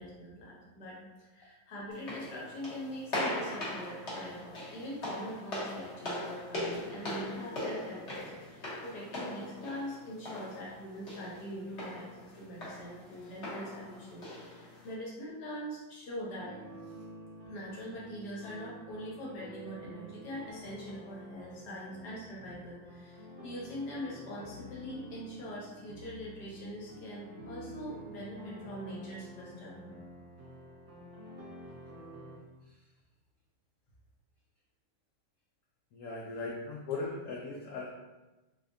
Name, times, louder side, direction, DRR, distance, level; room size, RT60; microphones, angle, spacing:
voice 1, 0.0-16.6 17.5-29.8, equal, 65° left, -4 dB, 1.5 m, -43 dB
sound 1, 1.9-14.9, left 1 dB, 45° left, 1.2 m, -40 dB
sound 2, 16.4-32.4, right 1 dB, 65° right, 0.7 m, -49 dB
voice 2, 35.9-37.9, left 3 dB, 80° left, -3 dB, 0.7 m, -38 dB
3.4 x 3.3 x 2.6 m, 1.1 s
omnidirectional pair, 2.0 m